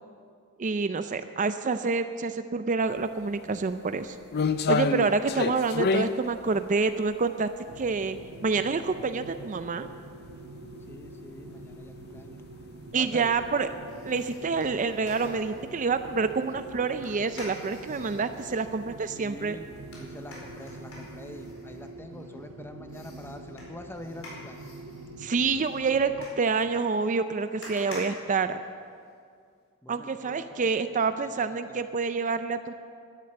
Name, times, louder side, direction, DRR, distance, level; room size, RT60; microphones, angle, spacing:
voice 1, 0.6-4.2 4.7-7.5 7.8-8.2 8.4-9.9 12.9-13.7 14.1-19.6 25.2-28.6 29.9-32.7, right 4 dB, 35° right, 10 dB, 0.5 m, -27 dB
sound 1, 3.0-3.1 3.5-8.6 9.0-9.1 9.8-9.9 10.2-10.3 11.3-11.4 11.7-11.9 12.4-12.5 12.8-12.9 15.1-15.2 16.4-16.8 17.2-17.6 17.9-18.1 18.4-18.5 19.6-19.8 20.4-21.1 21.5-21.6, left 4 dB, 50° left, 0.5 m, -28 dB
sound 2, 7.7-26.3, right 1 dB, 75° right, 1.1 m, -45 dB
voice 2, 10.9-12.4 12.9-13.3 19.1-19.7 20.0-24.6 29.8-31.3 31.7-31.8, left 1 dB, 10° left, 7 dB, 0.7 m, -45 dB
sound 3, 13.9-15.7 17.0-18.7 19.9-22.4 22.9-29.1 29.5-29.6, left 1 dB, 70° left, 4.6 m, -47 dB
12.0 x 11.0 x 7.8 m, 2.2 s
head